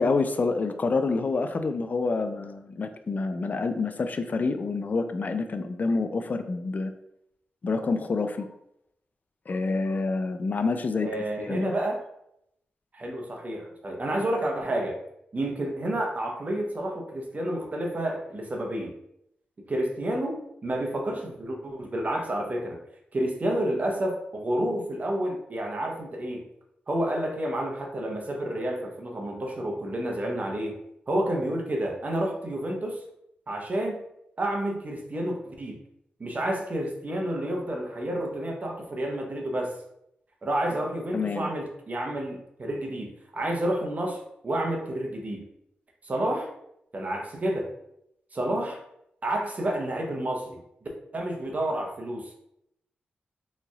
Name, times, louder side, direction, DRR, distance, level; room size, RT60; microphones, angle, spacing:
voice 1, 0.0-6.9 7.6-8.5 9.5-11.1 11.4-11.7 41.1-41.5, left 3 dB, 50° left, 9 dB, 0.4 m, -27 dB
voice 2, 11.0-12.0 12.9-15.0 15.3-18.9 19.7-22.8 23.1-26.5 26.9-30.8 31.1-33.0 33.5-34.0 34.4-35.8 36.2-39.8 40.4-45.5 46.0-46.5 46.9-47.7 48.3-48.8 49.2-50.6 51.1-52.3, right 1 dB, 45° right, 1 dB, 0.9 m, -30 dB
3.7 x 3.1 x 2.4 m, 0.78 s
cardioid pair, 50°, 4 cm